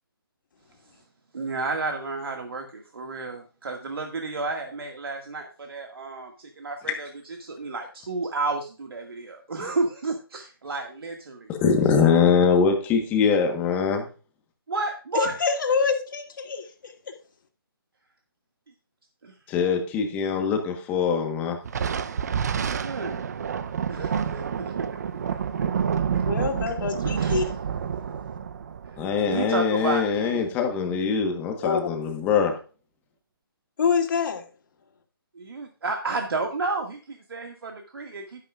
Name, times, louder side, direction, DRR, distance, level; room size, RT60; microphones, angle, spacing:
voice 1, 1.3-7.1 7.4-11.5 14.7-15.3 19.2-19.3 22.7-23.2 23.9-24.7 26.1-26.2 27.2-27.5 29.3-30.4 35.4-38.5, right 3 dB, 70° right, 1.9 m, -31 dB
voice 2, 11.5-14.1 19.5-21.6 29.0-32.5, left 6 dB, 15° left, 1.2 m, -23 dB
voice 3, 15.1-16.6 26.2-27.5 31.6-31.8 33.8-34.4, left 5 dB, 55° left, 2.7 m, -25 dB
Thunder, 21.6-30.4, right 7 dB, 45° right, 0.7 m, -29 dB
12.0 x 11.5 x 2.4 m
hypercardioid pair, 160°, 13 cm